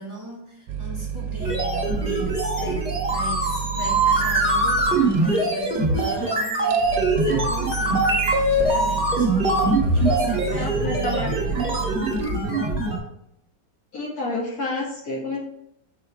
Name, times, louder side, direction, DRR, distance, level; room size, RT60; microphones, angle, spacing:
voice 1, 0.0-9.4 9.9-12.8, equal, 15° right, -3 dB, 2.0 m, -37 dB
sound 1, 0.7-12.3, right 8 dB, 85° right, 1.3 m, -31 dB
sound 2, 1.4-13.0, right 2 dB, 35° right, 2.5 m, -22 dB
voice 2, 10.5-11.4 13.9-15.4, left 2 dB, 55° left, -2 dB, 1.6 m, -29 dB
6.7 x 6.3 x 3.3 m, 0.78 s
omnidirectional pair, 2.0 m